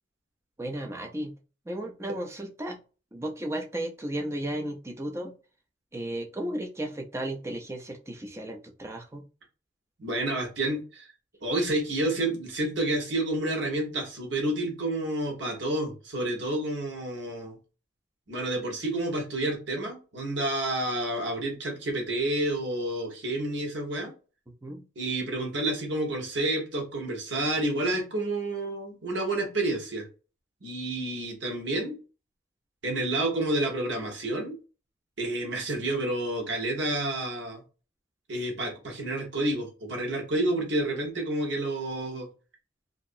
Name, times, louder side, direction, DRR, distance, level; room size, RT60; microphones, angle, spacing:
voice 1, 0.6-1.3 1.7-2.8 3.1-5.3 5.9-9.3 24.6-24.9, right 1 dB, 15° right, 2 dB, 0.4 m, -34 dB
voice 2, 10.0-11.1 11.4-17.6 18.3-24.1 25.0-30.1 30.6-32.0 32.8-34.6 35.2-37.6 38.3-42.3, right 1 dB, 65° right, 1 dB, 1.1 m, -29 dB
2.9 x 2.6 x 2.6 m, 0.34 s
head